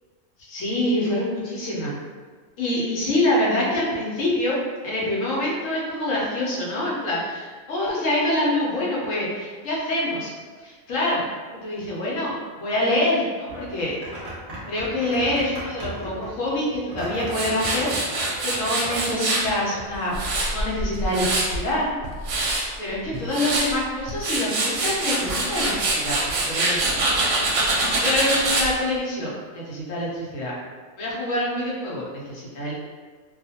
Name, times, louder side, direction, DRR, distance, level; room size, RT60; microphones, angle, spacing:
voice 1, 0.4-1.9 2.6-4.6 4.8-10.3 10.6-11.2 11.5-13.9 14.7-17.9 18.4-20.2 20.5-22.0 22.5-27.0 28.0-30.5 31.0-32.7, left 1 dB, 70° left, -5 dB, 1.1 m, -26 dB
sound 1, 13.5-19.8, right 1 dB, 35° right, 0.7 m, -36 dB
Tools, 17.3-19.5 19.9-21.6 22.0-22.6 23.1-23.7 24.1-28.7, right 2 dB, 65° right, 0.8 m, -24 dB
2.4 x 2.3 x 2.7 m, 1.5 s
omnidirectional pair, 1.5 m